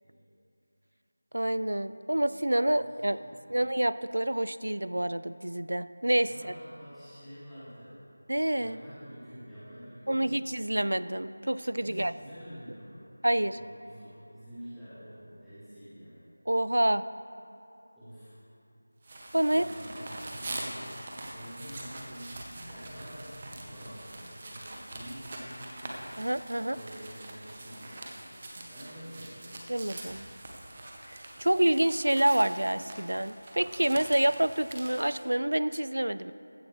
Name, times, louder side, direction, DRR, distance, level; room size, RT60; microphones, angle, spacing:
voice 1, 1.3-3.2 3.5-6.5 8.3-8.8 10.1-12.1 13.2-13.6 16.5-17.0 19.3-19.7 26.2-26.8 29.7-30.3 31.1-36.3, right 1 dB, 70° right, 14 dB, 0.4 m, -27 dB
voice 2, 2.8-3.4 6.2-8.0 8.5-10.3 11.8-12.9 13.4-16.2 18.0-18.4 19.3-20.9 21.3-26.1 26.5-29.8, equal, ahead, -19 dB, 2.4 m, -47 dB
sound 1, 19.0-35.3, right 2 dB, 25° right, 1.3 m, -44 dB
16.0 x 12.5 x 3.4 m, 2.7 s
figure-of-eight pair, 170°, 0 cm